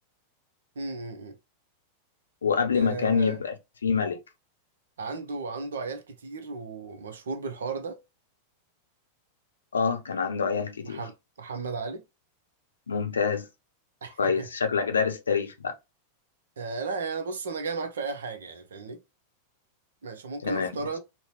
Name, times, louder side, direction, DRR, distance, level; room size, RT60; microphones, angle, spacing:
voice 1, 0.8-1.4 2.7-3.4 5.0-8.0 10.8-12.0 14.0-14.5 16.6-19.0 20.0-21.0, right 4 dB, 65° right, 0.6 m, -35 dB
voice 2, 2.4-3.5 3.8-4.2 9.7-11.0 12.9-13.5 14.2-15.8 20.4-20.8, left 6 dB, 70° left, 0.6 m, -26 dB
3.9 x 2.1 x 2.9 m
figure-of-eight pair, 90°, 0 cm